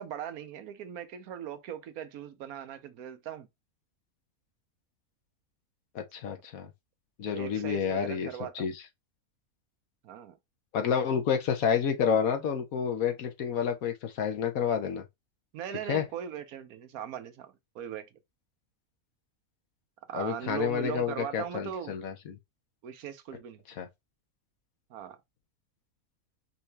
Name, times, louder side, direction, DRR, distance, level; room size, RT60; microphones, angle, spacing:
voice 1, 0.0-3.5 6.6-6.7 7.2-8.7 10.0-10.4 15.5-18.1 20.1-21.9 22.8-23.6 24.9-25.2, right 9 dB, 80° right, 1.2 m, -39 dB
voice 2, 5.9-6.7 7.2-8.3 8.5-8.8 10.7-15.0 15.9-16.1 20.1-22.4 23.8-23.9, left 7 dB, 70° left, 1.3 m, -29 dB
5.5 x 2.8 x 3.3 m
omnidirectional pair, 1.5 m